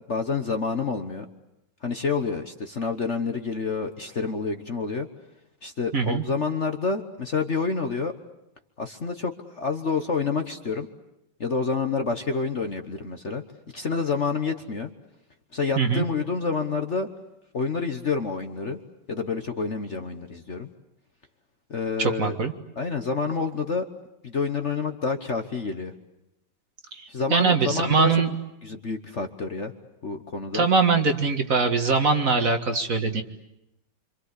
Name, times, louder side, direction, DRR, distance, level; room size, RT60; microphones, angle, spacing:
voice 1, 0.1-1.3 1.8-5.1 5.6-8.1 8.8-10.9 11.4-13.4 13.7-14.9 15.5-17.1 17.5-18.8 19.1-20.7 21.7-22.4 22.8-23.9 24.2-25.9 27.1-28.2 28.6-29.7 30.0-30.7, left 4 dB, 40° left, 6 dB, 1.3 m, -28 dB
voice 2, 5.9-6.2 15.8-16.0 22.0-22.5 27.3-28.3 30.5-33.2, right 4 dB, 45° right, 6 dB, 1.9 m, -22 dB
27.0 x 26.5 x 8.3 m, 0.89 s
omnidirectional pair, 2.2 m